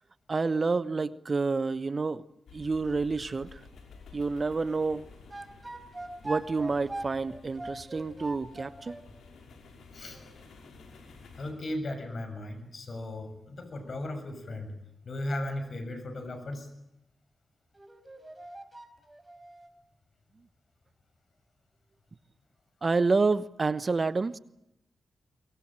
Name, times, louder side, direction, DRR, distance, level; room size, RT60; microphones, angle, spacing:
voice 1, 0.3-2.2 2.5-3.6 4.1-5.1 6.2-9.0 22.8-24.4, right 4 dB, 45° right, 16 dB, 1.1 m, -28 dB
sound 1, 2.5-11.5, left 4 dB, 80° left, 5.3 m, -52 dB
sound 2, 5.3-9.0 10.1-10.3 17.7-19.7, right 2 dB, 25° right, 4.9 m, -41 dB
voice 2, 11.4-14.7 15.0-16.7, left 1 dB, 60° left, 9 dB, 6.7 m, -36 dB
23.0 x 21.5 x 8.9 m, 0.82 s
supercardioid pair, 40°, 0 cm